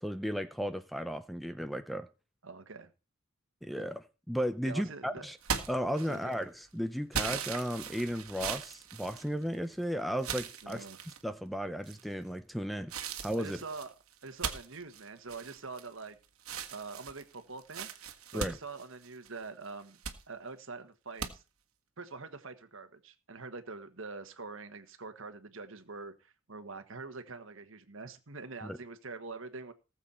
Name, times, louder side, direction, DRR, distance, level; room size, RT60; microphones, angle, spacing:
voice 1, 0.0-2.1 3.6-5.4 5.7-10.9 11.2-12.9 13.2-13.6 18.3-18.6 28.6-28.8, equal, ahead, 0.5 m, -35 dB
voice 2, 2.4-2.9 4.6-5.3 6.0-6.3 10.6-11.0 13.4-13.9 14.2-16.2 16.7-20.0 20.3-21.4 22.0-29.7, right 4 dB, 65° right, 1.5 m, -44 dB
sound 1, 5.4-6.4 7.1-9.7 10.2-11.2 11.8-12.3 12.9-16.1 16.4-19.4 19.8-20.2 21.2-21.3, right 7 dB, 85° right, 1.6 m, -39 dB
19.0 x 7.3 x 4.3 m
head